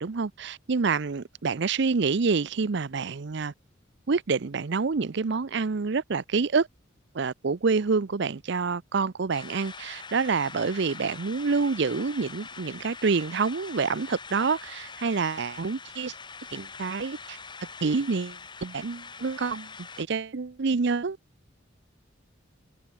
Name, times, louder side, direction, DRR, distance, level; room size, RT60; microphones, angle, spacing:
voice 1, 0.0-3.5 4.1-6.7 7.1-16.1 16.5-17.4 17.8-19.7 20.0-21.2, right 4 dB, 60° right, 0.6 m, -27 dB
sound 1, 9.3-20.1, left 5 dB, 25° left, 1.4 m, -44 dB
head